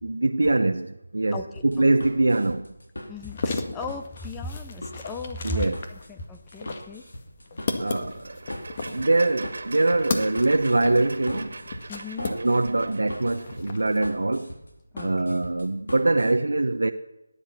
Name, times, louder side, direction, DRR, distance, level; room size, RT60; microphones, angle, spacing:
voice 1, 0.0-2.7 5.4-5.8 7.8-8.4 8.8-11.5 12.2-14.5 15.0-16.9, right 2 dB, 75° right, 0.9 m, -23 dB
voice 2, 1.3-1.6 3.1-7.0 11.9-12.4 14.9-15.4, left 3 dB, 10° left, 0.7 m, -36 dB
sound 1, 1.5-16.3, left 1 dB, 80° left, 4.1 m, -41 dB
sound 2, 3.2-12.9 13.2-14.0, left 4 dB, 35° left, 2.0 m, -35 dB
sound 3, 8.0-13.7, right 3 dB, 60° right, 2.0 m, -41 dB
18.0 x 10.5 x 7.3 m
figure-of-eight pair, 165°, 0 cm